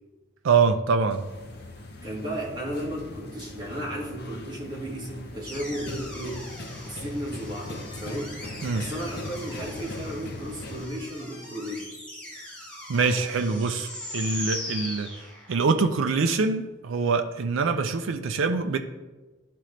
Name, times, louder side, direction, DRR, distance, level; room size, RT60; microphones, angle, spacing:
voice 1, 0.4-1.3 8.6-8.8 12.9-15.1 15.5-18.8, right 4 dB, 75° right, 6 dB, 0.4 m, -24 dB
sound 1, 1.0-10.9, left 1 dB, 50° left, 0.7 m, -40 dB
voice 2, 2.0-6.6 6.8-8.4 8.7-11.9, equal, 20° right, -5 dB, 1.8 m, -34 dB
sound 2, 5.5-15.7, left 1 dB, 5° left, 1.0 m, -40 dB
11.5 x 3.8 x 3.2 m, 1.2 s
head